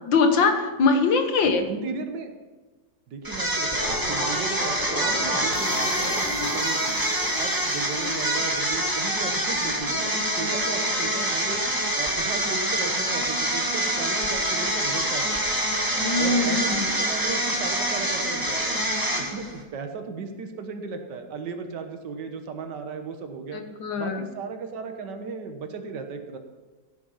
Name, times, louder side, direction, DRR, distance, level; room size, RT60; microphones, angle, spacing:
voice 1, 0.1-1.7 15.8-16.9 23.5-24.2, left 4 dB, 90° left, 6 dB, 2.1 m, -22 dB
voice 2, 1.6-2.3 3.1-7.0 7.4-11.6 12.0-15.6 16.2-18.8 19.2-23.6 24.0-26.4, right 4 dB, 70° right, 5 dB, 1.9 m, -35 dB
sound 1, 3.2-19.6, right 1 dB, 10° right, 2.0 m, -26 dB
sound 2, 3.8-8.6, equal, 55° left, 4.7 m, -34 dB
sound 3, 5.5-9.2, equal, 75° left, 2.7 m, -38 dB
16.0 x 9.2 x 5.7 m, 1.3 s
omnidirectional pair, 2.0 m